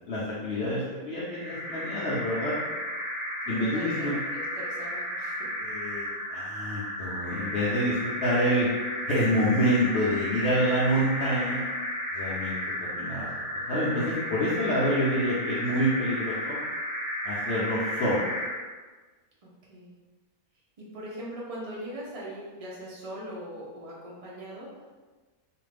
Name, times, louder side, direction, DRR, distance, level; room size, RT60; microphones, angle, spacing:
voice 1, 0.1-2.5 3.5-4.1 5.6-8.7 9.1-11.6 12.1-13.3 13.7-16.6 17.2-18.3, equal, 60° left, -8 dB, 0.8 m, -27 dB
sound 1, 1.3-18.6, equal, 10° left, 0.7 m, -33 dB
voice 2, 3.5-5.5 19.4-19.9 20.8-24.9, equal, 60° right, -5 dB, 0.3 m, -41 dB
2.5 x 2.4 x 3.2 m, 1.3 s
omnidirectional pair, 1.5 m